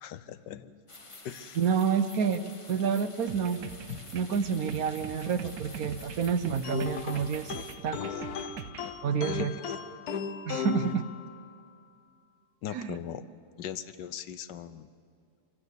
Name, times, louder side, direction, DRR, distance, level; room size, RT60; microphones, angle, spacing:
voice 1, 0.0-0.8 1.2-1.6 3.9-4.1 9.3-9.6 12.6-13.3 13.6-14.9, left 10 dB, 85° left, 14 dB, 1.4 m, -39 dB
sound 1, 0.9-7.8, left 2 dB, 20° left, 1.1 m, -49 dB
voice 2, 1.6-2.4 2.7-3.6 4.1-7.5 7.8-8.1 9.0-9.5 10.5-11.0 12.7-13.0, right 6 dB, 60° right, 11 dB, 1.2 m, -28 dB
sound 2, 3.3-8.9, right 8 dB, 90° right, 1.5 m, -43 dB
sound 3, 6.6-11.7, left 7 dB, 65° left, 1.3 m, -36 dB
24.0 x 16.0 x 8.2 m, 2.3 s
omnidirectional pair, 1.8 m